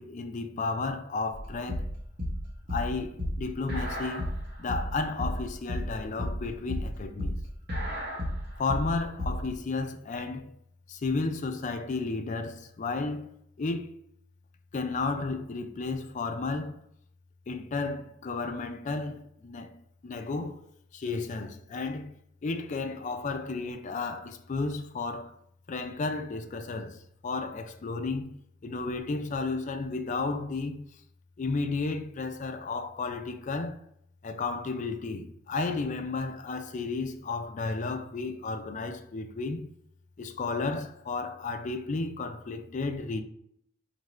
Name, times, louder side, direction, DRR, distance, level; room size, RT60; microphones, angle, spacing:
voice 1, 0.0-1.9 2.7-4.3 4.6-7.4 8.6-10.6 10.9-13.3 13.6-13.9 14.7-16.8 17.5-20.6 20.9-22.1 22.4-25.4 25.7-28.3 28.6-30.8 31.4-33.8 34.2-39.7 40.2-43.2, left 3 dB, 40° left, 0.4 m, -33 dB
sound 1, 1.3-9.5, equal, 55° right, 1.1 m, -32 dB
4.4 x 2.5 x 3.1 m
head